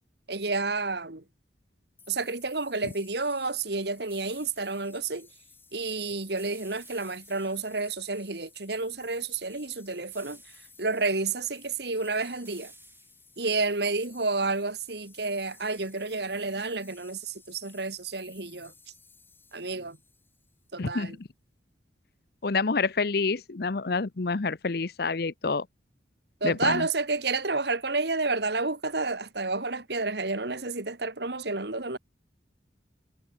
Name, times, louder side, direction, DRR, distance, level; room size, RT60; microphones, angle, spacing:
voice 1, 0.3-1.2 2.1-5.3 5.7-10.4 10.8-12.7 13.4-18.7 19.5-20.0 20.7-21.1 26.4-32.0, right 3 dB, 60° right, 2.1 m, -30 dB
sound 1, 2.0-20.7, left 4 dB, 10° left, 6.9 m, -55 dB
sound 2, 4.1-4.8 6.4-7.8 10.1-10.9 12.4-13.5, right 4 dB, 10° right, 4.7 m, -54 dB
voice 2, 20.8-21.3 22.4-25.7 26.4-26.9, left 4 dB, 55° left, 0.7 m, -28 dB
head